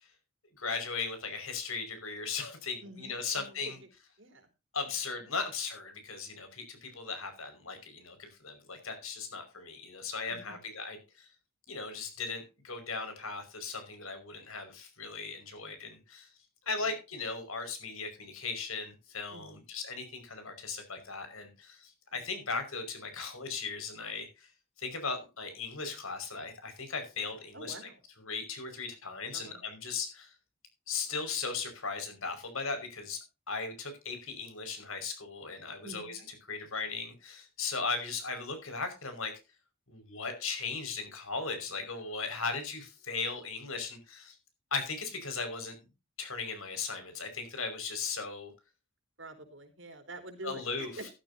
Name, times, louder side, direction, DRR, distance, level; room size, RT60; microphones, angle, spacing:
voice 1, 0.6-3.8 4.7-11.3 11.7-16.3 16.7-24.5 24.8-27.9 28.2-30.3 30.9-33.2 33.5-39.3 39.9-44.4 44.7-45.8 46.2-48.5 50.4-50.9, left 4 dB, 75° left, 8 dB, 5.4 m, -37 dB
voice 2, 2.8-3.9 4.2-4.5 4.9-5.3 10.3-10.6 15.5-15.8 16.8-16.9 19.3-19.6 22.1-22.2 27.5-28.0 29.3-29.6 35.8-36.2 49.2-51.1, right 2 dB, 60° right, 7 dB, 3.8 m, -47 dB
14.5 x 13.0 x 2.7 m, 0.29 s
head